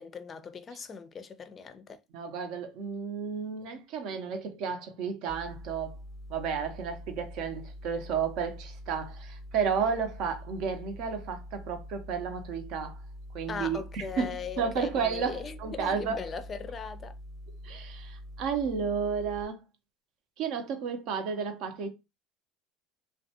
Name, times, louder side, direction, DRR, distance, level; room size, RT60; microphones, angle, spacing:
voice 1, 0.0-2.0 13.5-17.1, left 5 dB, 35° left, 0.4 m, -39 dB
voice 2, 2.1-6.0 6.3-13.0 13.3-16.2 17.6-19.6 20.4-21.9, right 6 dB, 65° right, 0.6 m, -32 dB
sound 1, 5.3-19.5, equal, 5° right, 0.7 m, -45 dB
2.4 x 2.2 x 2.7 m
supercardioid pair, 95°, 0 cm